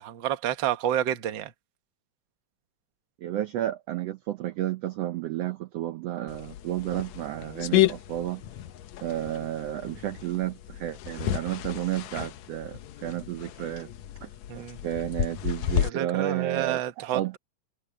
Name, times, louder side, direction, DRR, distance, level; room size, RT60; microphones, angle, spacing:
voice 1, 0.0-1.5 14.5-14.8 15.6-17.4, right 11 dB, 55° right, 1.3 m, -29 dB
voice 2, 3.2-8.4 9.0-13.9 14.2-14.3 14.5-17.3, right 13 dB, 80° right, 1.4 m, -32 dB
sound 1, 6.3-15.9, left 13 dB, 70° left, 1.9 m, -31 dB
omnidirectional pair, 3.9 m